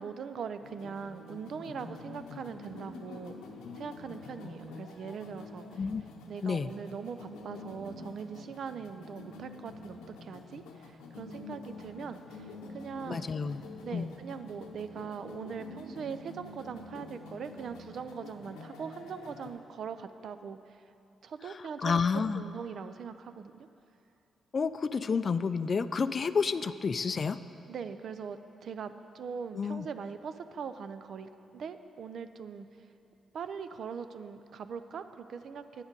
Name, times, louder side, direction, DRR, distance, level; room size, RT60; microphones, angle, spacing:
voice 1, 0.0-3.4 3.7-5.8 6.3-13.3 13.8-20.8 21.2-22.0 22.3-23.7 27.7-32.9 33.3-35.8, right 6 dB, 65° right, 10 dB, 0.4 m, -41 dB
sound 1, 0.6-19.5, left 3 dB, 85° left, 0.7 m, -47 dB
voice 2, 13.1-13.6 13.9-14.1 21.8-22.4 24.5-27.4 29.5-29.9, left 5 dB, 50° left, 13 dB, 0.3 m, -30 dB
9.1 x 7.1 x 5.3 m, 2.7 s
supercardioid pair, 50°, 0 cm